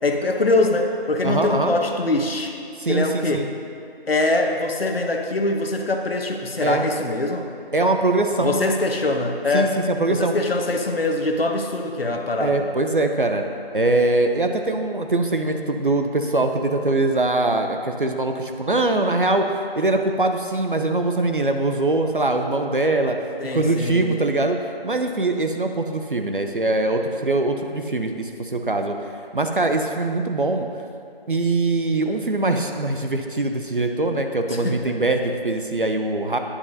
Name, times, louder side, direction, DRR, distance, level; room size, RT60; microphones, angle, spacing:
voice 1, 0.0-2.6 2.9-3.5 4.1-7.5 8.4-9.8 10.1-12.7 23.4-24.1 34.5-34.9, left 2 dB, 70° left, 3 dB, 1.0 m, -23 dB
voice 2, 1.2-1.7 2.8-3.4 6.6-6.8 7.7-8.7 9.5-10.3 12.4-13.4 13.7-23.2 23.5-29.0 29.3-30.7 31.3-36.4, right 2 dB, 55° right, 5 dB, 0.6 m, -22 dB
12.5 x 9.9 x 2.7 m, 2.4 s
figure-of-eight pair, 170°, 31 cm